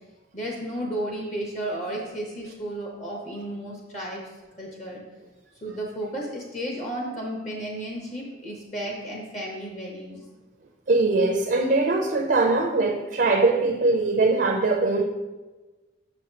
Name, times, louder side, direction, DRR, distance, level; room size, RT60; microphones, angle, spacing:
voice 1, 0.3-4.2 4.6-5.0 5.6-10.2, right 1 dB, 35° left, -2 dB, 0.9 m, -33 dB
voice 2, 10.9-15.0, right 3 dB, 50° right, 2 dB, 0.5 m, -21 dB
6.3 x 6.1 x 2.8 m, 1.2 s
head